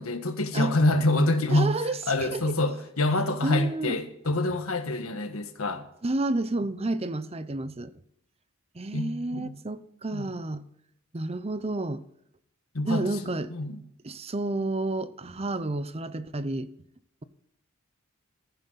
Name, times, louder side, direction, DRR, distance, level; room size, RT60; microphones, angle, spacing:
voice 1, 0.0-1.7 2.1-5.8 8.9-9.5 10.1-10.3 12.7-13.0 13.5-13.8, left 2 dB, 85° left, 1.6 m, -26 dB
voice 2, 1.5-2.5 3.4-4.0 6.0-7.9 8.7-10.6 11.1-12.0 12.8-13.5 14.0-16.7, right 2 dB, 30° right, 0.7 m, -30 dB
14.5 x 10.5 x 4.1 m
head